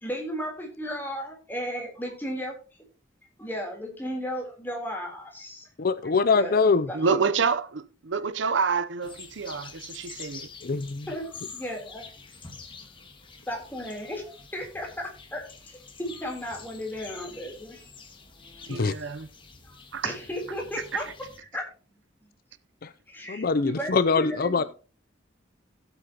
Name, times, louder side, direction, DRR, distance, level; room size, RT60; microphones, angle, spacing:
voice 1, 0.0-2.5 3.4-5.7 6.3-7.3 11.1-12.0 13.5-17.9 18.5-19.1 19.6-19.8 20.0-21.1 21.5-21.6 23.1-24.7, equal, 10° left, 3.5 m, -35 dB
voice 2, 5.8-6.9 10.6-11.1 18.7-18.9 22.8-22.9 23.3-24.6, left 4 dB, 50° left, 0.5 m, -23 dB
voice 3, 6.9-10.5 18.7-19.3 19.9-20.2, right 5 dB, 70° right, 0.7 m, -28 dB
sound 1, 9.0-21.4, left 5 dB, 25° left, 1.7 m, -47 dB
16.0 x 8.1 x 2.9 m
head